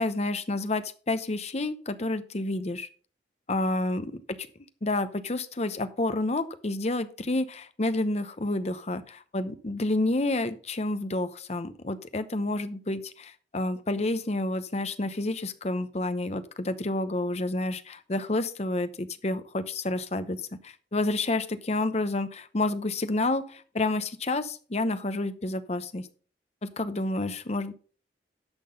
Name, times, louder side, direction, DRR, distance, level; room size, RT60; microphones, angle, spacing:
voice 1, 0.0-2.9 3.5-4.5 4.8-26.1 26.6-27.7, left 2 dB, 35° left, 12 dB, 0.8 m, -29 dB
10.5 x 6.1 x 5.2 m, 0.41 s
head